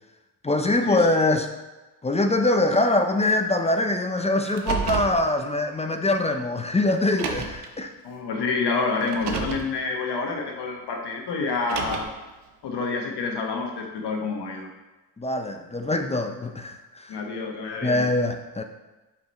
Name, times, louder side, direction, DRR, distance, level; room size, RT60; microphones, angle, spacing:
voice 1, 0.4-1.5 2.0-7.9 15.2-17.2 17.8-18.6, left 2 dB, 15° left, 6 dB, 0.4 m, -23 dB
Car, 4.4-5.2 6.3-6.4 7.1-7.7 9.0-9.7 11.5-12.2, right 6 dB, 85° right, 0.9 m, -30 dB
voice 2, 8.0-12.1 12.6-14.7 17.1-18.0, left 4 dB, 80° left, 2 dB, 1.3 m, -28 dB
5.9 x 5.0 x 4.2 m, 1.1 s
cardioid pair, 110°, 40 cm